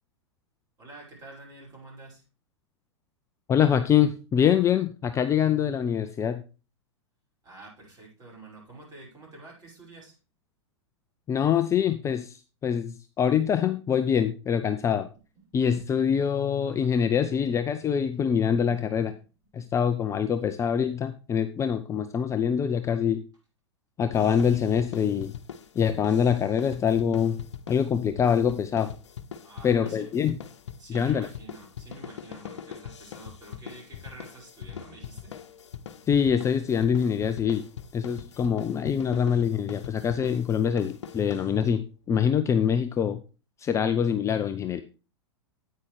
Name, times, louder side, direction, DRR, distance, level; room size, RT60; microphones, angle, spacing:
voice 1, 0.8-2.2 7.4-10.2 15.1-15.5 17.0-17.5 18.6-19.3 19.6-19.7 29.4-30.1 30.8-35.3, right 2 dB, 25° right, -2 dB, 5.7 m, -48 dB
voice 2, 3.5-6.4 11.3-15.1 15.5-19.1 19.5-23.2 24.0-25.3 25.8-27.4 27.7-28.9 29.6-30.4 30.9-31.3 36.1-37.6 37.9-41.8 42.1-43.2 43.6-44.8, left 8 dB, 20° left, 9 dB, 0.5 m, -24 dB
sound 1, 24.1-41.9, left 8 dB, 70° left, 0.9 m, -42 dB
9.6 x 8.6 x 3.3 m, 0.33 s
hypercardioid pair, 105°, 15 cm